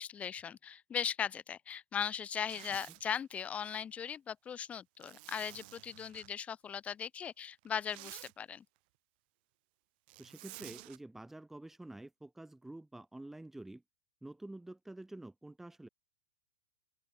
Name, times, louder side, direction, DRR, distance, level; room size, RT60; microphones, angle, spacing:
voice 1, 0.0-8.6, left 8 dB, 20° left, 1.5 m, -38 dB
Zipper (clothing), 2.3-3.0 5.0-6.3 7.6-8.3 10.1-11.0, right 25 dB, 55° right, 6.5 m, -51 dB
voice 2, 10.2-13.8 14.2-15.9, right 2 dB, 5° right, 6.1 m, -48 dB
hypercardioid pair, 120°, 6 cm